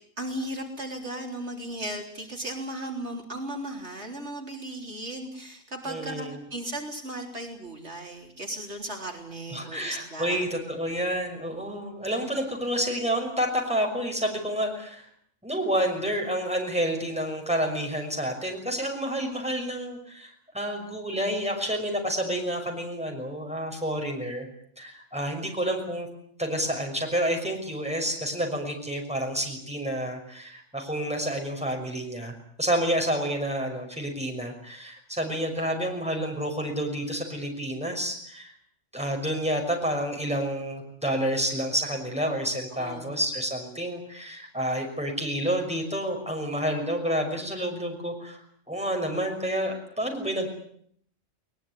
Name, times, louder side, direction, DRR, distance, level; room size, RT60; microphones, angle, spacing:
voice 1, 0.2-10.4 42.8-43.2, right 1 dB, 60° right, 2 dB, 3.9 m, -36 dB
voice 2, 5.9-6.4 9.5-15.1 15.4-24.5 24.8-26.1 26.4-38.5 38.9-48.4 48.7-50.5, equal, 5° right, 2 dB, 6.0 m, -29 dB
22.0 x 21.0 x 9.9 m, 0.65 s
omnidirectional pair, 1.3 m